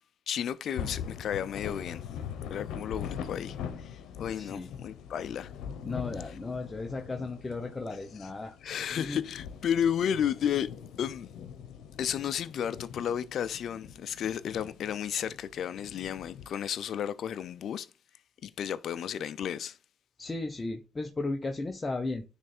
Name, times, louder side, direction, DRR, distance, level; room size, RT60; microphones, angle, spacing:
voice 1, 0.3-2.0 2.5-5.5 8.6-10.7 11.0-11.3 12.0-17.9 18.4-19.8, left 9 dB, 65° left, 0.5 m, -32 dB
sound 1, 0.8-16.5, left 8 dB, 90° left, 0.9 m, -42 dB
voice 2, 4.3-4.7 5.8-8.6 8.9-9.2 20.2-22.2, left 3 dB, 25° left, 0.8 m, -35 dB
9.7 x 3.3 x 4.3 m
cardioid pair, 90°, 0 cm